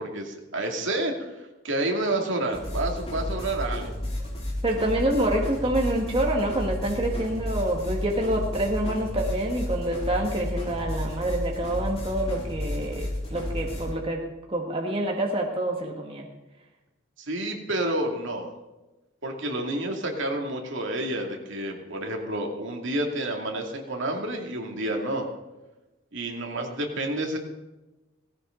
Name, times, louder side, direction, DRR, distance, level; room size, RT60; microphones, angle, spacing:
voice 1, 0.0-3.9 17.2-18.5 19.2-25.3 26.1-27.4, right 1 dB, 60° right, 2 dB, 2.5 m, -29 dB
sound 1, 2.5-13.9, left 1 dB, 30° left, 4.1 m, -32 dB
voice 2, 4.6-14.2 14.5-16.3, right 1 dB, 25° right, 0 dB, 1.6 m, -27 dB
17.5 x 16.0 x 3.9 m, 1.1 s
head